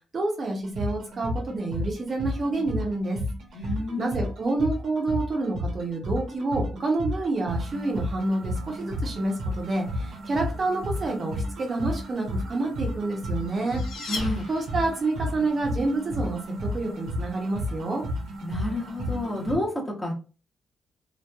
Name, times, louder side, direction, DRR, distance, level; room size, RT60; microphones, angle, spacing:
voice 1, 0.1-3.2 4.0-13.8 14.5-18.0, right 2 dB, 35° right, 1 dB, 0.6 m, -28 dB
sound 1, 0.6-19.5, left 1 dB, 70° right, 0.7 m, -32 dB
voice 2, 3.5-4.2 14.1-14.4 18.4-20.1, left 1 dB, 15° left, -1 dB, 0.7 m, -30 dB
sound 2, 13.1-15.1, left 3 dB, 60° left, 0.6 m, -37 dB
2.8 x 2.1 x 2.2 m, 0.35 s
cardioid pair, 150°, 0 cm